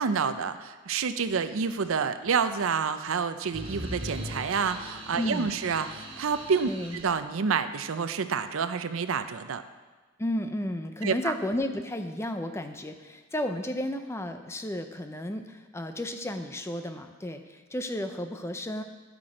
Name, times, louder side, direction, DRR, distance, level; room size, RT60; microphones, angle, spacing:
voice 1, 0.0-9.6 11.0-11.3, right 5 dB, 70° right, 11 dB, 0.5 m, -28 dB
sound 1, 3.5-7.1, equal, 25° right, 1.5 m, -39 dB
voice 2, 5.2-5.5 6.7-7.0 10.2-18.8, left 1 dB, 10° left, 7 dB, 0.5 m, -33 dB
12.5 x 6.1 x 5.0 m, 1.3 s
head